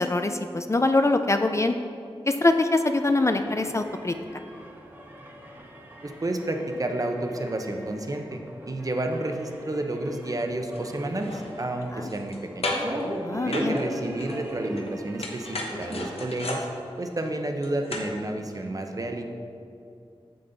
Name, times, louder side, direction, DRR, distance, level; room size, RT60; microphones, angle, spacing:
voice 1, 0.0-1.8 2.3-4.1 11.9-12.1 13.2-13.7, left 2 dB, 30° left, 7 dB, 0.3 m, -23 dB
sound 1, 3.3-16.2, equal, 20° right, 1.1 m, -39 dB
voice 2, 6.0-8.4 8.7-12.7 13.4-16.7 17.0-19.2, right 1 dB, 35° right, 4 dB, 0.7 m, -30 dB
sound 2, 10.7-10.9 11.2-12.4 12.6-13.0 13.5-14.9 15.2-18.2 18.5-18.6, left 2 dB, 80° left, 1.0 m, -34 dB
7.6 x 7.2 x 3.9 m, 2.5 s
wide cardioid pair, 85°, 10 cm